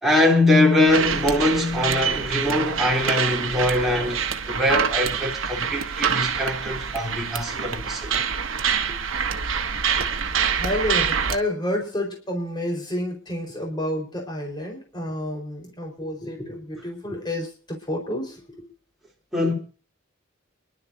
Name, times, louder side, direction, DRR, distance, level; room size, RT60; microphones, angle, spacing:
voice 1, 0.0-4.2 4.5-8.1 19.3-19.5, left 1 dB, ahead, 3.1 m, -22 dB
sound 1, 0.9-11.4, right 7 dB, 80° right, 1.2 m, -26 dB
voice 2, 10.5-18.6, left 1 dB, 20° left, 4.4 m, -30 dB
27.5 x 12.0 x 2.7 m
head